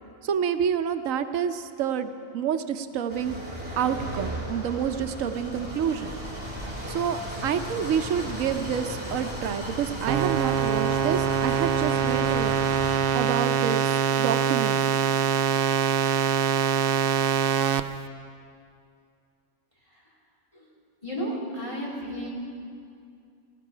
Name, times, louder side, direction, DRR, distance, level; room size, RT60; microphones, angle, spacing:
voice 1, 0.2-3.4 3.7-6.1 6.9-12.6 13.1-15.0, right 8 dB, 85° right, 9 dB, 1.1 m, -28 dB
sound 1, 3.1-13.0, equal, 5° right, 2.9 m, -35 dB
sound 2, 10.1-17.8, right 7 dB, 60° right, 0.6 m, -24 dB
voice 2, 21.0-22.3, equal, 25° left, -5 dB, 3.7 m, -32 dB
18.0 x 15.5 x 5.0 m, 2.4 s
omnidirectional pair, 1.3 m